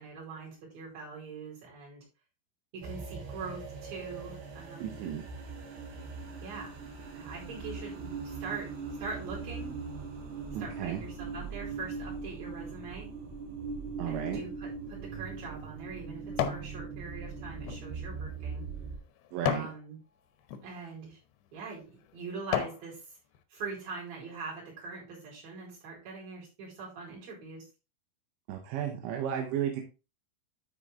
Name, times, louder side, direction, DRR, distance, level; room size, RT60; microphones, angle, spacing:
voice 1, 0.0-2.0 2.7-5.0 6.4-6.8 7.1-8.7 9.0-9.8 10.6-13.1 14.1-18.7 19.4-20.0 20.6-21.2 21.5-23.2 23.5-27.7, right 4 dB, 50° right, -5 dB, 6.5 m, -43 dB
sound 1, 2.8-19.0, right 4 dB, 70° right, 4.5 m, -40 dB
voice 2, 4.8-5.3 10.6-11.0 14.0-14.4 19.3-19.7 28.5-29.8, right 9 dB, 85° right, 2 dB, 3.5 m, -34 dB
sound 2, 14.9-16.7 17.2-19.8 20.4-20.6 21.3-21.5 22.0-22.9 23.3-23.4, left 10 dB, 80° left, 3.0 m, -35 dB
12.0 x 4.8 x 3.8 m, 0.30 s
omnidirectional pair, 5.1 m